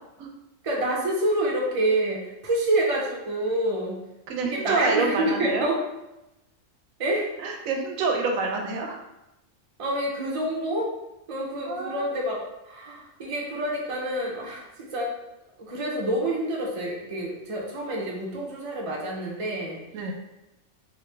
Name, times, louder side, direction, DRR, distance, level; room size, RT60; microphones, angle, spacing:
voice 1, 0.6-4.0 4.4-5.8 7.0-7.3 9.8-10.9 11.3-14.6 14.9-15.1 15.6-19.8, right 1 dB, 35° right, -2 dB, 0.5 m, -27 dB
voice 2, 4.3-5.7 7.4-9.0 11.7-12.1 19.9-20.1, right 3 dB, 85° right, 3 dB, 1.0 m, -27 dB
3.1 x 2.6 x 3.2 m, 0.93 s
omnidirectional pair, 1.4 m